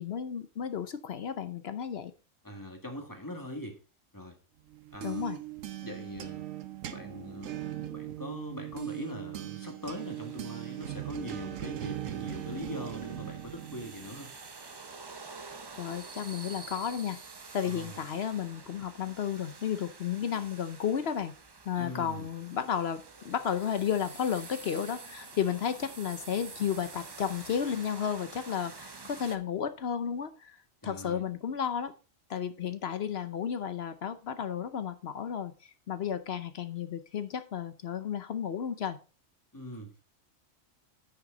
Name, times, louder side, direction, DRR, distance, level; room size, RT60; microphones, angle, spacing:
voice 1, 0.0-2.1 5.0-5.4 15.8-17.2 17.5-21.3 21.7-31.9 32.3-39.0, left 8 dB, 60° left, 11 dB, 0.9 m, -33 dB
voice 2, 2.4-3.8 4.1-4.4 4.9-5.3 5.8-6.5 6.9-14.3 17.6-18.0 21.8-22.3 30.8-31.2 39.5-40.0, equal, 15° left, 3 dB, 1.7 m, -42 dB
sound 1, 4.7-14.3, right 12 dB, 80° right, 1.1 m, -39 dB
sound 2, 9.8-29.4, right 4 dB, 30° right, 0.5 m, -48 dB
9.6 x 6.1 x 3.8 m, 0.35 s
omnidirectional pair, 1.3 m